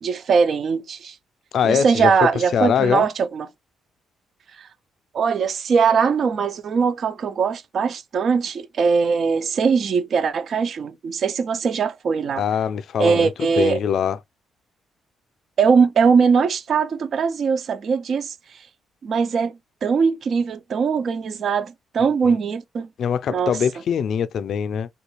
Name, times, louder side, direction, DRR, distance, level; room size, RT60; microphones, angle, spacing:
voice 1, 0.0-1.1 1.6-3.5 4.6-4.7 5.1-12.4 13.0-13.8 15.6-18.3 19.0-22.9 23.3-23.5, right 5 dB, 55° right, 0.4 m, -21 dB
voice 2, 1.5-2.1 2.5-3.1 12.4-14.2 22.3-22.4 23.0-24.9, left 8 dB, 65° left, 0.4 m, -22 dB
3.6 x 2.3 x 3.0 m
cardioid pair, 90°, 0 cm